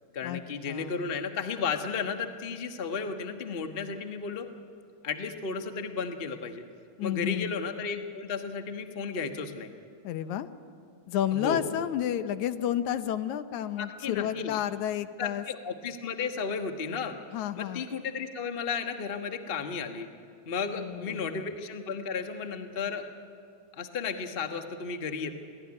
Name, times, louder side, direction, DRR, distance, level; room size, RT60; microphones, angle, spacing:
voice 1, 0.1-4.5 5.0-6.6 7.0-9.7 11.3-11.7 13.8-14.6 15.2-17.2 17.6-20.1 20.5-23.1 23.8-25.3, left 5 dB, 60° left, 6 dB, 0.6 m, -34 dB
voice 2, 0.7-1.1 7.0-7.5 10.0-10.5 11.1-15.4 17.3-17.8 20.8-21.4, left 11 dB, 80° left, 11 dB, 2.3 m, -31 dB
27.5 x 17.5 x 9.8 m, 2.3 s
omnidirectional pair, 3.4 m